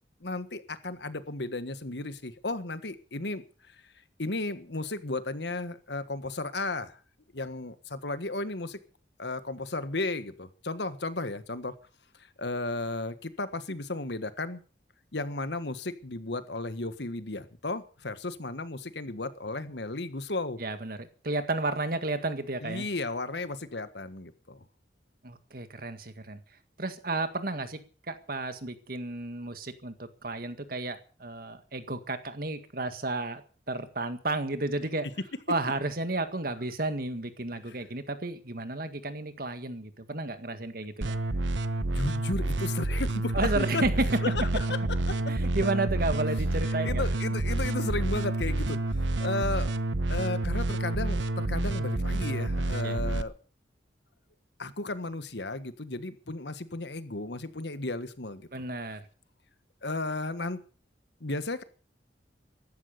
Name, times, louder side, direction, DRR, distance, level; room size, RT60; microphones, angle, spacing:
voice 1, 0.2-3.4 3.7-3.8 4.2-7.0 7.3-8.8 9.2-11.7 12.2-14.6 15.1-20.6 22.6-24.6 37.7-37.8 41.9-43.8 44.2-44.8 45.1-45.2 46.8-49.7 50.1-53.3 54.6-58.5 59.8-60.6 61.2-61.6, left 2 dB, 70° left, 12 dB, 1.6 m, -34 dB
voice 2, 20.6-22.9 25.2-26.4 26.8-27.8 28.1-33.4 33.7-35.1 35.5-41.2 43.3-43.9 45.3-47.0 52.8-53.0 58.5-59.0, right 2 dB, 55° right, 9 dB, 1.9 m, -32 dB
sound 1, 41.0-53.2, right 2 dB, 90° right, 1.0 m, -29 dB
15.0 x 12.5 x 6.7 m, 0.39 s
head